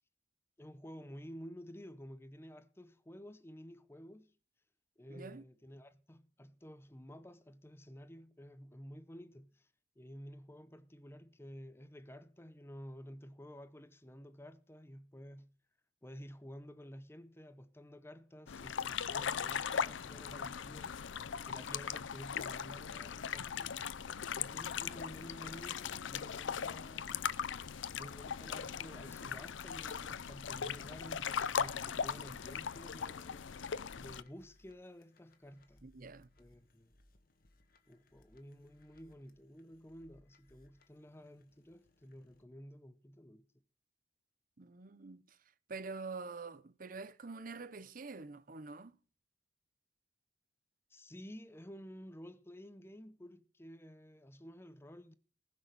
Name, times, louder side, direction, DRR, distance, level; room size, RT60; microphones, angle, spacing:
voice 1, 0.6-4.4 5.0-9.7 10.0-15.5 16.0-21.0 21.4-23.8 24.4-27.4 27.8-35.8 36.4-36.9 37.9-43.5 50.9-55.1, equal, 15° left, 0.6 m, -52 dB
voice 2, 5.1-5.4 35.8-36.3 44.6-45.2 45.7-48.9, right 4 dB, 45° right, 0.7 m, -46 dB
sound 1, 18.5-34.2, left 7 dB, 80° left, 0.5 m, -39 dB
sound 2, 28.9-42.4, left 2 dB, 50° left, 1.9 m, -68 dB
19.5 x 6.5 x 6.7 m
head